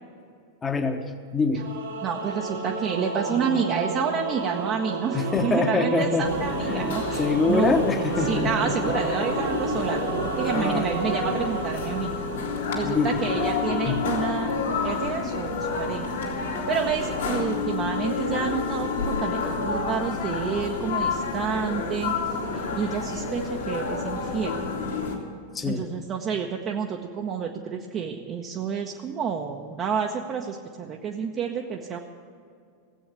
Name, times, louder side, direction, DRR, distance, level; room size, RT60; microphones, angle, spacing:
voice 1, 0.6-1.0 1.3-1.6 5.1-6.3 6.7-8.9 10.5-10.9 12.8-13.2 13.8-14.0 25.5-25.8, left 4 dB, 20° left, 6 dB, 1.2 m, -25 dB
Singing / Musical instrument, 1.6-12.8, right 5 dB, 65° right, 2.0 m, -32 dB
voice 2, 2.0-7.7 8.2-12.1 12.7-14.5 14.8-22.2 22.5-24.6 25.7-32.0, right 6 dB, 30° right, 1 dB, 1.0 m, -29 dB
sound 1, 6.2-25.2, left 4 dB, 65° left, 2.5 m, -29 dB
16.5 x 8.5 x 8.5 m, 2.3 s
figure-of-eight pair, 90°, 0 cm